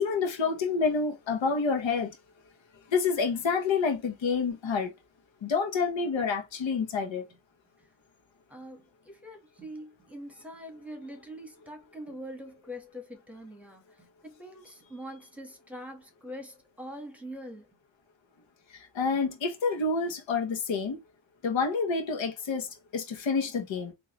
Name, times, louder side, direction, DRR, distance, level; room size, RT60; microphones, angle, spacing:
voice 1, 0.0-2.2 2.9-4.9 5.4-7.2 18.7-21.0 21.4-23.9, left 5 dB, 80° left, 1.2 m, -28 dB
voice 2, 8.5-17.7, equal, 5° right, 1.5 m, -44 dB
3.9 x 2.8 x 3.1 m
cardioid pair, 75°, 45 cm